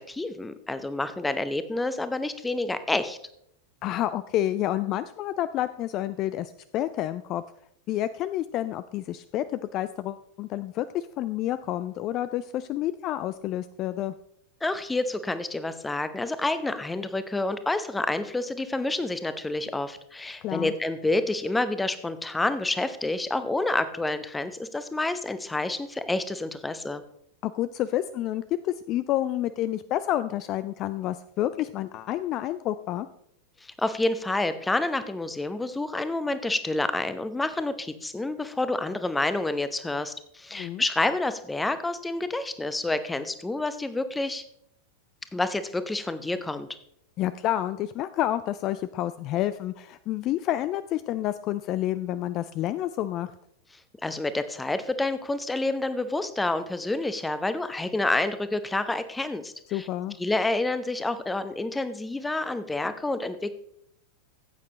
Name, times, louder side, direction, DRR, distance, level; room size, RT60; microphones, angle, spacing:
voice 1, 0.0-3.2 14.6-27.0 33.6-44.4 45.3-46.7 54.0-59.9 60.2-63.5, left 2 dB, 10° left, 12 dB, 0.7 m, -28 dB
voice 2, 3.8-7.4 7.9-14.1 20.4-20.7 27.4-33.1 40.5-40.8 47.2-53.3 59.7-60.2, left 13 dB, 35° left, 14 dB, 0.3 m, -29 dB
14.5 x 8.5 x 3.2 m, 0.73 s
figure-of-eight pair, 90°, 0 cm